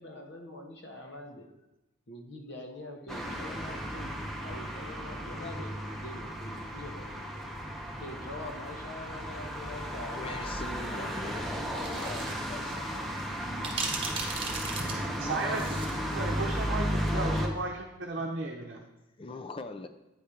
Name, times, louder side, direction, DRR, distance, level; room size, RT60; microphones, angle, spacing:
voice 1, 0.0-1.5 2.1-7.5 8.0-10.7 10.9-12.2 12.5-13.1, left 1 dB, 60° left, 1.1 m, -45 dB
sound 1, 3.1-17.5, equal, ahead, 0.9 m, -34 dB
voice 2, 10.2-12.8 19.2-19.9, left 3 dB, 25° left, 0.4 m, -42 dB
sound 2, 11.8-12.3 12.7-12.8 13.6-16.0, right 4 dB, 30° right, 1.2 m, -36 dB
voice 3, 14.8-15.6 16.1-18.8, right 3 dB, 55° right, 0.8 m, -35 dB
8.9 x 4.3 x 5.0 m
head